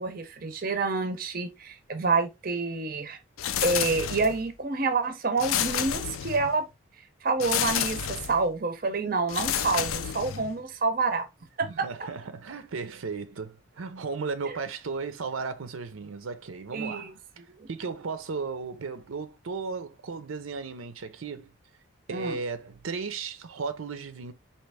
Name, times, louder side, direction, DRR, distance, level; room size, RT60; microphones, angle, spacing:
voice 1, 0.0-3.2 3.6-6.6 7.2-11.3 11.6-12.1 14.5-14.6 16.7-17.1 17.5-17.7 22.1-22.4, right 3 dB, 45° right, 0.6 m, -28 dB
sound 1, 3.4-4.5 5.4-6.6 7.4-8.4 9.3-10.6, left 10 dB, 85° left, 0.4 m, -30 dB
voice 2, 11.6-17.2 17.7-21.5 22.1-24.3, right 4 dB, 85° right, 0.6 m, -35 dB
4.2 x 2.9 x 3.3 m
head